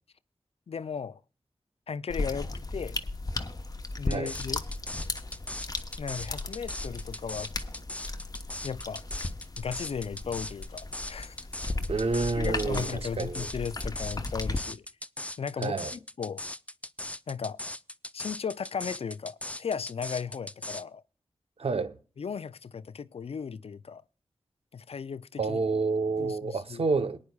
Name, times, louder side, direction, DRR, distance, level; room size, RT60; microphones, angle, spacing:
voice 1, 0.7-1.2 1.9-3.0 4.0-4.6 6.0-7.5 8.6-9.3 9.6-11.4 12.4-14.9 15.4-16.4 17.3-17.6 18.1-21.0 22.2-24.0 24.7-25.6 26.2-26.9, left 6 dB, 75° left, 0.4 m, -36 dB
sound 1, 2.1-14.6, left 2 dB, 40° left, 1.0 m, -36 dB
sound 2, 4.1-20.8, left 1 dB, 15° left, 0.4 m, -39 dB
voice 2, 11.9-13.5 15.6-15.9 21.6-22.0 25.4-27.2, right 4 dB, 75° right, 0.8 m, -29 dB
22.5 x 9.7 x 2.3 m
cardioid pair, 45°, 10 cm